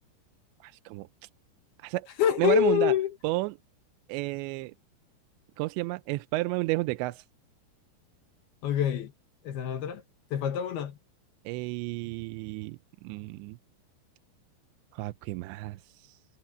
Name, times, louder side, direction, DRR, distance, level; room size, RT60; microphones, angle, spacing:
voice 1, 0.6-1.3 1.8-2.1 2.4-2.9 3.2-3.6 4.1-4.7 5.6-7.2 11.5-13.6 14.9-16.2, right 20 dB, 80° right, 2.8 m, -32 dB
voice 2, 2.2-3.1 8.6-9.1 9.4-10.0 10.3-11.0, left 10 dB, 65° left, 3.1 m, -26 dB
omnidirectional pair, 5.3 m